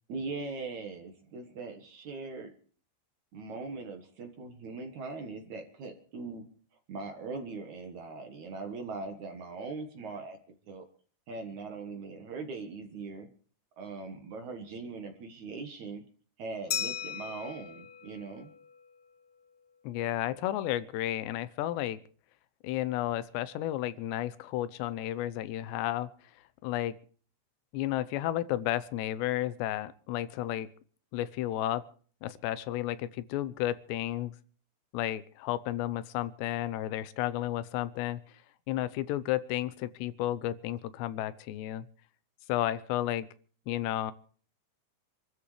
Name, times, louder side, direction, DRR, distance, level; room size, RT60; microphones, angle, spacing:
voice 1, 0.1-2.5 3.3-6.5 6.9-10.4 10.7-10.9 11.3-13.3 13.8-16.0 16.4-18.5, right 4 dB, 55° right, 5 dB, 2.4 m, -40 dB
Glass, 16.7-19.2, left 9 dB, 65° left, 1.8 m, -38 dB
voice 2, 19.8-22.0 22.6-26.1 26.6-26.9 27.7-30.7 31.1-31.8 32.2-34.3 34.9-38.2 38.7-41.9 42.5-43.3 43.7-44.1, left 13 dB, 85° left, 15 dB, 3.0 m, -32 dB
27.0 x 13.5 x 3.3 m, 0.44 s
omnidirectional pair, 4.8 m